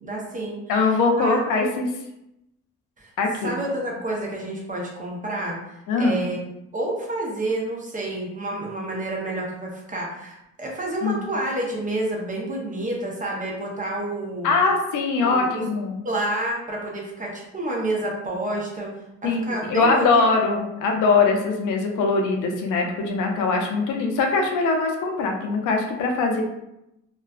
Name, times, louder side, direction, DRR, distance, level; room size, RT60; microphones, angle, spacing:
voice 1, 0.0-0.6 0.9-1.4 3.0-3.1 3.4-5.6 6.0-14.5 15.2-15.7 16.0-18.9 19.2-20.3, right 1 dB, 25° right, -3 dB, 0.7 m, -29 dB
voice 2, 0.7-1.9 3.2-3.5 5.9-6.2 11.0-11.3 14.4-16.0 19.2-26.4, left 3 dB, 85° left, 2 dB, 0.5 m, -22 dB
2.4 x 2.2 x 2.3 m, 0.86 s
cardioid pair, 90°, 30 cm